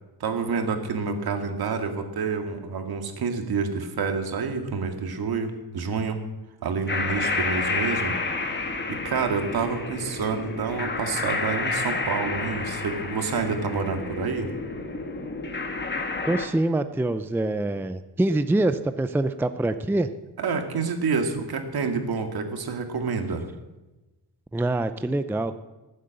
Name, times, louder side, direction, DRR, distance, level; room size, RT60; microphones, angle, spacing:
voice 1, 0.2-6.2 6.6-8.2 8.5-14.5 20.4-23.5, right 5 dB, 65° right, 5 dB, 2.1 m, -28 dB
sound 1, 6.9-16.5, left 3 dB, 25° left, 1.6 m, -30 dB
voice 2, 16.2-20.1 24.5-25.5, right 2 dB, 5° right, 11 dB, 0.5 m, -25 dB
18.5 x 8.0 x 7.7 m, 1.1 s
wide cardioid pair, 125°, 40 cm